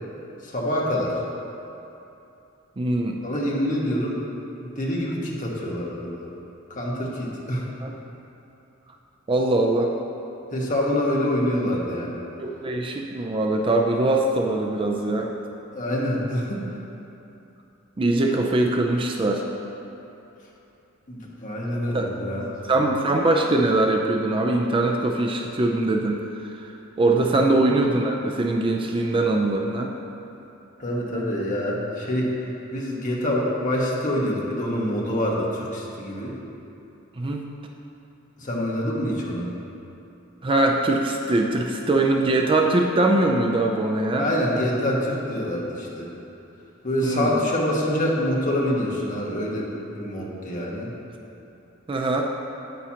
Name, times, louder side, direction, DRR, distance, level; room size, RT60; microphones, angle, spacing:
voice 1, 0.4-1.2 3.2-4.2 4.6-6.3 6.7-7.7 10.5-12.2 15.7-16.6 21.1-22.6 27.3-27.5 30.8-32.3 32.7-36.3 38.4-39.5 44.2-46.1 46.8-50.9, left 1 dB, 40° left, -4 dB, 1.3 m, -26 dB
voice 2, 2.8-3.2 7.8-7.9 9.3-9.9 12.4-15.3 18.0-19.5 21.9-22.1 22.7-26.2 26.6-26.7 27.0-29.9 37.2-37.4 40.4-44.3 47.0-47.3 51.9-52.2, right 2 dB, 25° right, 1 dB, 0.4 m, -22 dB
9.1 x 8.8 x 2.9 m, 2.8 s
head